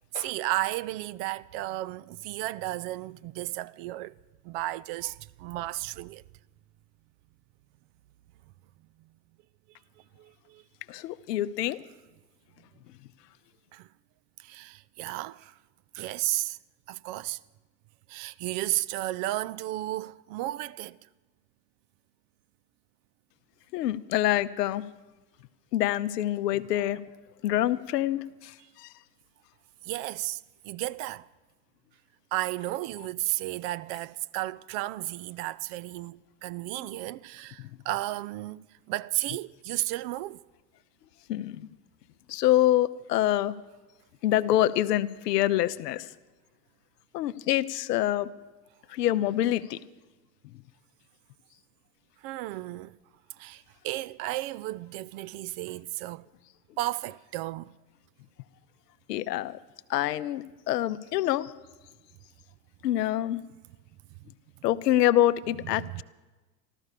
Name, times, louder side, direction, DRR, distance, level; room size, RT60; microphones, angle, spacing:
voice 1, 0.1-4.1 4.4-6.2 10.2-10.6 13.7-13.9 14.4-15.5 15.9-16.6 16.9-17.4 18.1-21.0 29.8-31.3 32.3-40.4 52.2-53.0 53.4-56.3 56.8-57.7 65.8-66.0, right 16 dB, 55° right, 0.5 m, -33 dB
voice 2, 10.9-11.8 23.7-24.8 25.7-27.0 27.4-28.9 37.6-37.7 41.3-41.7 42.3-43.5 44.2-46.1 47.1-48.3 48.9-49.8 59.1-59.6 59.9-61.5 62.8-63.4 64.6-66.0, left 13 dB, 80° left, 0.7 m, -26 dB
13.5 x 13.0 x 6.6 m
hypercardioid pair, 75°, 48 cm